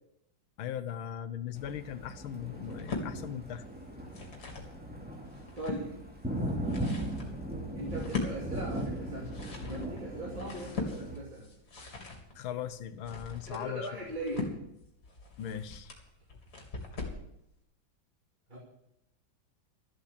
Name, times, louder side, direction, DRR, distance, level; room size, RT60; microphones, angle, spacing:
voice 1, 0.6-3.6 12.4-14.0 15.4-15.9, left 9 dB, 90° left, 12 dB, 1.7 m, -39 dB
Thunder, 1.5-11.2, right 1 dB, 5° right, 2.5 m, -38 dB
sound 1, 2.6-3.1 3.9-4.7 5.2-5.8 6.4-17.3, left 3 dB, 50° left, 3.3 m, -40 dB
voice 2, 5.6-6.0 7.8-11.5 13.4-14.5 18.5-18.6, right 1 dB, 25° right, -3 dB, 2.8 m, -39 dB
13.5 x 8.3 x 8.4 m, 0.79 s
omnidirectional pair, 2.2 m